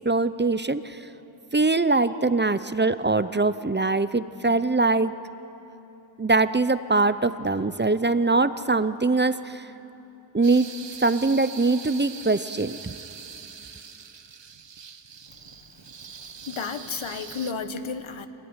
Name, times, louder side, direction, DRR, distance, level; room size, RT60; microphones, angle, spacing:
voice 1, 0.0-1.0 1.5-5.2 6.2-9.7 10.3-10.7 11.0-13.0, right 3 dB, 25° right, 13 dB, 0.6 m, -22 dB
sound 1, 10.4-17.5, right 6 dB, 65° right, 1.0 m, -42 dB
voice 2, 16.5-18.3, left 5 dB, 85° left, 9 dB, 1.2 m, -32 dB
27.0 x 16.0 x 9.7 m, 3.0 s
wide cardioid pair, 80°, 46 cm